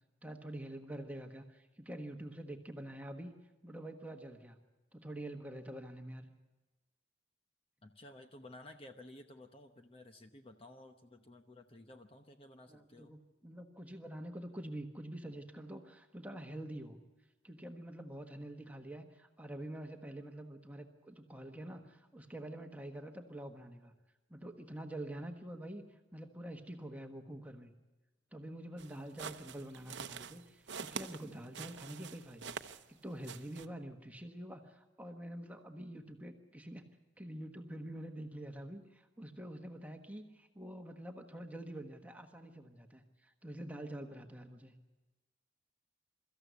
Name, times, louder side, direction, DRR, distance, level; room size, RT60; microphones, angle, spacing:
voice 1, 0.2-3.3 3.6-4.6 4.9-6.3 12.7-17.0 17.4-23.9 24.3-27.7 28.3-36.8 37.2-44.7, right 1 dB, 10° right, 5 dB, 1.4 m, -46 dB
voice 2, 7.8-13.1, left 1 dB, 30° left, 6 dB, 0.9 m, -54 dB
sound 1, 28.8-33.0 33.2-33.7, right 6 dB, 75° right, 0.8 m, -46 dB
24.0 x 14.0 x 8.2 m, 1.2 s
head